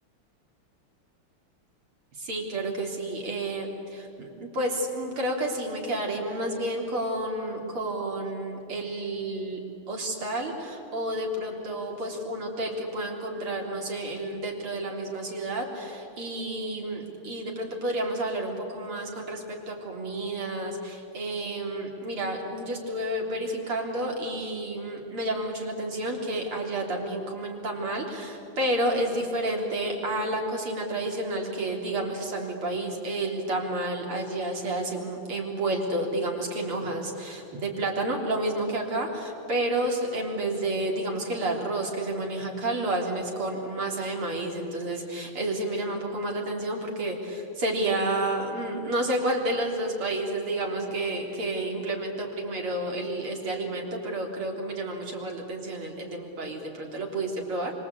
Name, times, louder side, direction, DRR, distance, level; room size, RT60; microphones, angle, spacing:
voice 1, 2.1-9.6 9.9-57.7, right 1 dB, 75° right, 0 dB, 4.5 m, -30 dB
26.5 x 25.0 x 8.5 m, 2.8 s
omnidirectional pair, 2.4 m